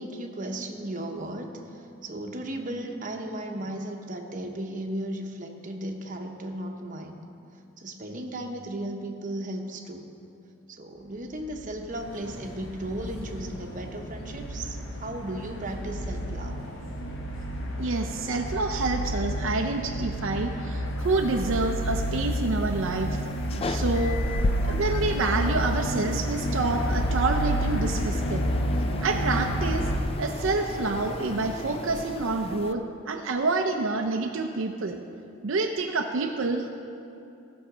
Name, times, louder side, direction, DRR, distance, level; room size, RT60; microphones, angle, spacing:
voice 1, 0.0-7.2 7.8-10.1 10.7-16.5, right 1 dB, 40° right, 2 dB, 1.0 m, -35 dB
sound 1, 11.4-30.0, equal, 60° left, 1.0 m, -30 dB
sound 2, 11.9-31.5, left 1 dB, 85° left, 2.0 m, -43 dB
voice 2, 17.8-23.2 23.7-24.2 24.6-28.4 29.0-29.9 30.2-35.0 35.4-36.7, right 3 dB, 70° right, 3 dB, 0.6 m, -28 dB
sound 3, 21.0-32.7, left 2 dB, 30° left, 0.4 m, -36 dB
16.5 x 6.4 x 5.0 m, 2.7 s
head